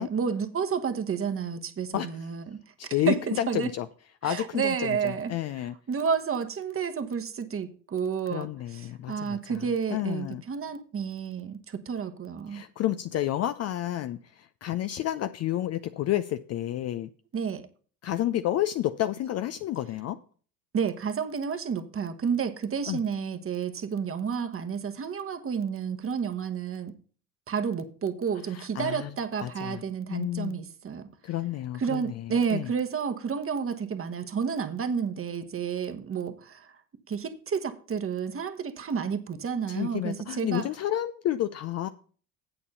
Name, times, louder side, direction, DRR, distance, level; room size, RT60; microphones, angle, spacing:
voice 1, 0.0-2.6 3.1-3.7 4.2-5.3 5.9-12.6 17.3-17.6 20.7-26.9 27.5-31.1 31.8-36.7 37.1-40.7, right 6 dB, 25° right, 1.2 m, -30 dB
voice 2, 2.8-3.9 4.2-5.8 8.3-10.4 12.5-17.1 18.0-20.2 22.9-23.0 28.5-29.1 29.4-29.8 30.1-30.6 31.2-32.7 39.7-41.9, left 13 dB, 35° left, 0.4 m, -30 dB
8.4 x 7.0 x 5.5 m
hypercardioid pair, 65°, 49 cm